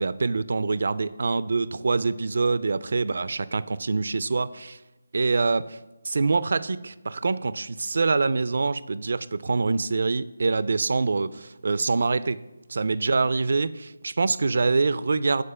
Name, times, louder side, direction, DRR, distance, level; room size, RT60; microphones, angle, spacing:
voice 1, 0.0-4.8 5.1-5.8 6.0-12.4 12.7-15.4, right 4 dB, 60° right, 16 dB, 0.3 m, -25 dB
6.6 x 4.7 x 5.5 m, 1.1 s
figure-of-eight pair, 160°, 0 cm